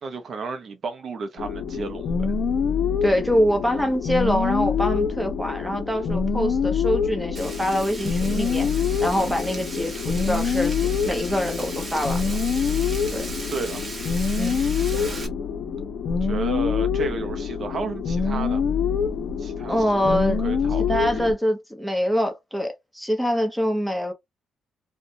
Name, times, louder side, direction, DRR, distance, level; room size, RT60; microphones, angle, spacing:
voice 1, 0.0-2.1 13.5-13.9 16.1-18.6 19.4-19.8 20.0-21.0, right 4 dB, 50° right, 0.5 m, -32 dB
sound 1, 1.4-21.3, left 6 dB, 60° left, 0.6 m, -25 dB
voice 2, 3.0-8.7 9.0-12.3 13.1-13.3 14.4-14.6 19.7-20.4 20.9-24.1, equal, ahead, 0.8 m, -24 dB
Frying (food), 7.4-15.3, right 2 dB, 35° right, 1.0 m, -37 dB
2.5 x 2.1 x 2.7 m
cardioid pair, 90°, 0 cm